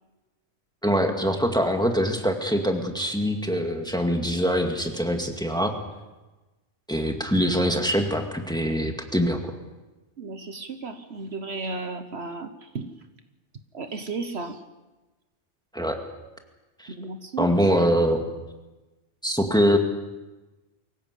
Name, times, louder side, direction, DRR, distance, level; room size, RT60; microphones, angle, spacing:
voice 1, 0.8-5.8 6.9-9.5 15.7-16.0 16.8-16.9 17.4-18.2 19.2-19.8, equal, 5° left, 3 dB, 2.1 m, -23 dB
voice 2, 10.2-12.9 13.7-14.6 16.9-17.5, right 4 dB, 60° right, 8 dB, 1.4 m, -34 dB
24.0 x 16.0 x 8.4 m, 1.1 s
omnidirectional pair, 1.2 m